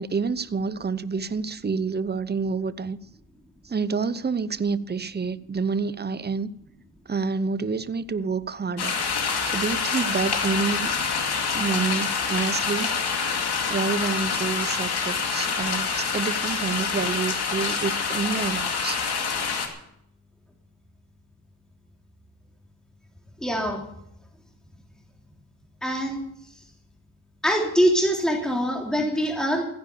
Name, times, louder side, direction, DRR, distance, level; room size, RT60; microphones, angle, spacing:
voice 1, 0.0-3.0 3.6-6.5 7.1-9.0 9.4-11.3 11.5-12.9 13.7-19.0, right 5 dB, 25° right, 0.7 m, -28 dB
sound 1, 8.8-19.7, left 5 dB, 75° left, 2.4 m, -26 dB
voice 2, 23.4-23.8 25.8-26.2 27.4-29.6, equal, ahead, 3.3 m, -23 dB
15.5 x 10.0 x 6.9 m
cardioid pair, 70°, 39 cm